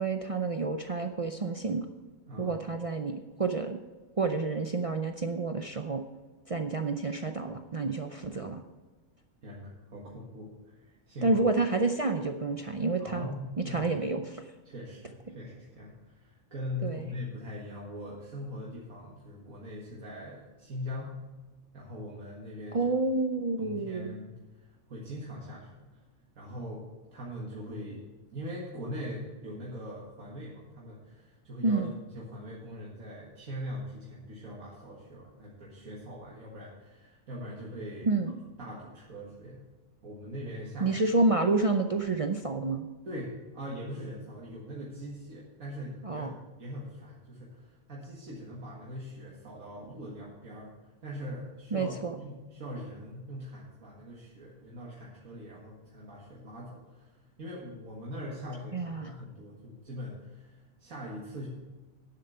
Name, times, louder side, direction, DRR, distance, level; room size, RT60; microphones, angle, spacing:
voice 1, 0.0-1.9 2.4-3.8 4.2-6.0 6.5-8.6 11.2-13.3 13.7-14.5 16.8-17.0 22.7-24.2 31.6-32.0 38.1-38.3 40.8-42.9 46.0-46.3 51.7-52.1 58.7-59.2, right 3 dB, 50° right, 6 dB, 0.4 m, -29 dB
voice 2, 2.3-2.6 9.4-11.4 13.0-13.9 14.7-21.2 21.7-22.9 23.6-26.0 26.4-26.9 27.1-31.8 32.1-38.1 38.6-39.7 40.0-41.0 43.1-61.5, equal, 80° right, -4 dB, 2.2 m, -42 dB
10.5 x 7.6 x 5.7 m, 1.2 s
omnidirectional pair, 1.4 m